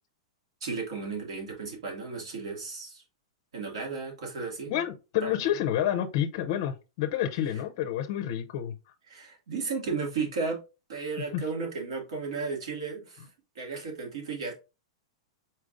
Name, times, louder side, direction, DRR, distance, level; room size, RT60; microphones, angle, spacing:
voice 1, 0.6-3.0 3.5-4.8 5.2-5.3 9.1-10.6 10.9-13.3 13.6-14.5, right 4 dB, 70° right, 2.2 m, -34 dB
voice 2, 4.7-8.7 11.3-11.4, left 11 dB, 35° left, 0.5 m, -29 dB
4.9 x 4.3 x 2.5 m
supercardioid pair, 180°, 3 cm